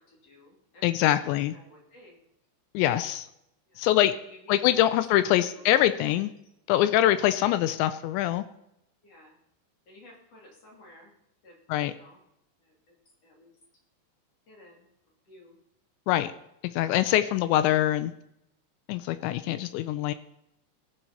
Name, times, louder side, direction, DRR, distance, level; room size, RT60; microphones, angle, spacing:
voice 1, 0.0-2.2 3.7-3.9 4.2-5.0 5.3-5.7 9.0-9.3 9.9-11.1 11.4-12.2 12.6-13.0 13.2-13.6 14.5-14.9 15.3-15.6, left 1 dB, 35° left, -2 dB, 3.4 m, -54 dB
voice 2, 0.8-1.5 2.7-3.3 3.8-4.1 4.5-6.3 6.7-8.4 11.7-11.9 16.1-16.3 16.7-18.1 18.9-20.1, left 13 dB, 85° left, 12 dB, 2.5 m, -24 dB
17.5 x 9.0 x 4.2 m, 0.79 s
omnidirectional pair, 5.8 m